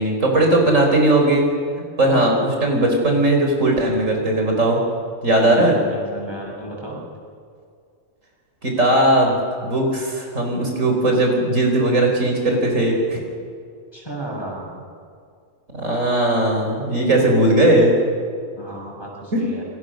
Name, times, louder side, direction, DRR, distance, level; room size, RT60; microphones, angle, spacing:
voice 1, 0.0-1.4 2.0-4.8 5.2-5.8 8.6-13.2 15.7-17.9 19.3-19.4, right 1 dB, 85° right, 1 dB, 5.2 m, -18 dB
voice 2, 5.3-7.0 13.9-14.7 18.6-19.6, right 1 dB, 20° left, -2 dB, 7.6 m, -33 dB
29.0 x 23.0 x 6.5 m, 2.2 s
omnidirectional pair, 1.3 m